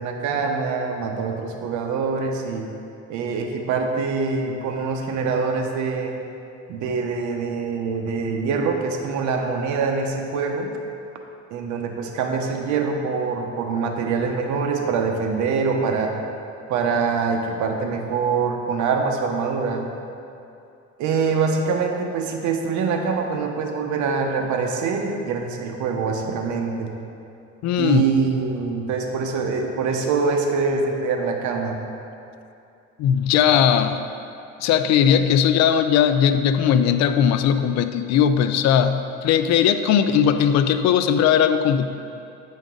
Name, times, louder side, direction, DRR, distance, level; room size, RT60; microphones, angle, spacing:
voice 1, 0.0-2.7 3.1-6.1 6.7-10.7 11.5-16.1 16.7-19.8 21.0-26.9 27.8-31.8, right 5 dB, 75° right, 3 dB, 1.0 m, -24 dB
voice 2, 27.6-28.1 33.0-34.0 34.6-41.9, left 8 dB, 65° left, 10 dB, 0.5 m, -18 dB
9.3 x 5.2 x 3.8 m, 2.6 s
cardioid pair, 110°, 30 cm